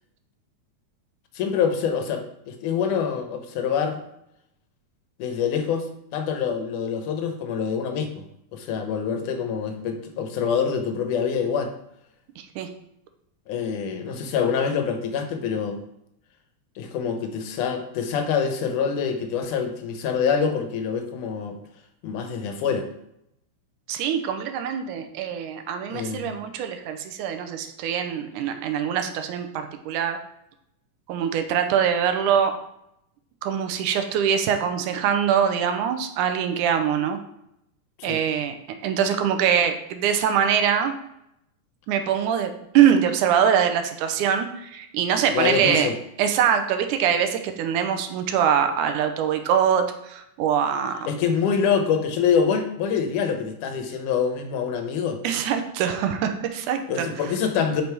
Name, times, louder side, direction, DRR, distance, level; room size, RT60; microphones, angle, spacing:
voice 1, 1.4-4.0 5.2-5.9 6.1-8.3 8.5-11.7 13.5-15.8 16.8-21.6 22.0-22.9 25.9-26.3 38.0-38.2 45.3-46.0 51.1-55.2 56.9-57.8, left 6 dB, 80° left, 5 dB, 2.4 m, -25 dB
voice 2, 12.4-12.7 23.9-30.2 31.1-32.6 33.4-37.2 38.0-38.5 38.8-40.9 41.9-45.9 46.2-51.1 55.2-57.1, right 8 dB, 85° right, 7 dB, 2.2 m, -23 dB
5.8 x 5.3 x 4.6 m, 0.78 s
omnidirectional pair, 3.5 m